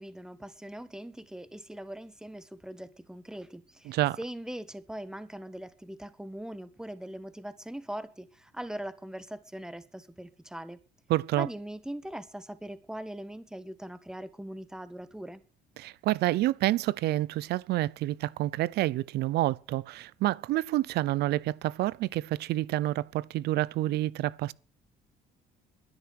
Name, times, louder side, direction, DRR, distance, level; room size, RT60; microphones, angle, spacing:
voice 1, 0.0-10.8 11.4-15.4, right 1 dB, 5° right, 1.5 m, -41 dB
voice 2, 3.9-4.2 11.1-11.5 15.8-24.5, right 16 dB, 75° right, 0.7 m, -28 dB
12.0 x 10.5 x 7.8 m
cardioid pair, 110°, 17 cm